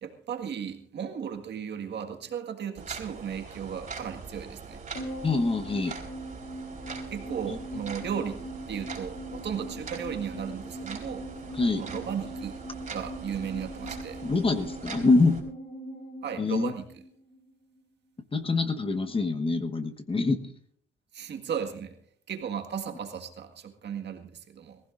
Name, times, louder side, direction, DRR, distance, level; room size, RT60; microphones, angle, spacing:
voice 1, 0.0-4.8 7.1-11.3 11.8-12.6 12.9-14.2 16.2-16.8 21.1-21.9 22.3-24.8, right 8 dB, 60° right, 5 dB, 1.8 m, -35 dB
sound 1, 2.8-15.4, right 4 dB, 40° right, 4.0 m, -42 dB
sound 2, 4.9-17.5 17.7-17.8, right 1 dB, 50° left, 4.1 m, -41 dB
voice 2, 5.2-6.0 7.5-7.6 11.5-11.8 14.2-15.4 16.4-16.7 18.3-20.4, left 3 dB, 25° left, 7 dB, 1.2 m, -25 dB
22.5 x 15.5 x 2.6 m, 0.62 s
cardioid pair, 90°, 20 cm